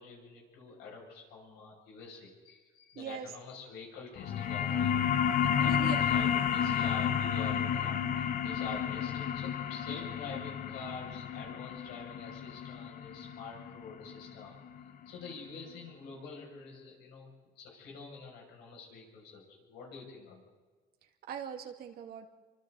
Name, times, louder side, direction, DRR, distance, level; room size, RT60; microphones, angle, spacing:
voice 1, 0.0-5.0 5.4-17.3 17.6-20.4, left 4 dB, 90° left, -1 dB, 7.1 m, -47 dB
voice 2, 3.0-3.3 5.6-6.0 21.3-22.3, right 7 dB, 65° right, 3 dB, 2.4 m, -40 dB
sound 1, 4.2-15.3, left 8 dB, 55° left, 1.1 m, -31 dB
28.0 x 25.0 x 4.2 m, 1.4 s
cardioid pair, 110°, 17 cm